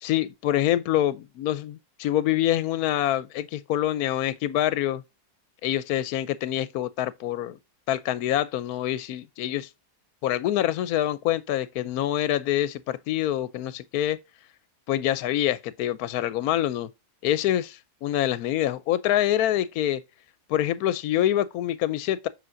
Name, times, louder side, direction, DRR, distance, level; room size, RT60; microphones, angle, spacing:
voice 1, 0.0-5.0 5.6-7.6 7.9-9.7 10.2-14.2 14.9-16.9 17.2-20.0 20.5-22.3, left 12 dB, 75° left, 1.0 m, -26 dB
7.7 x 6.1 x 2.6 m
omnidirectional pair, 1.7 m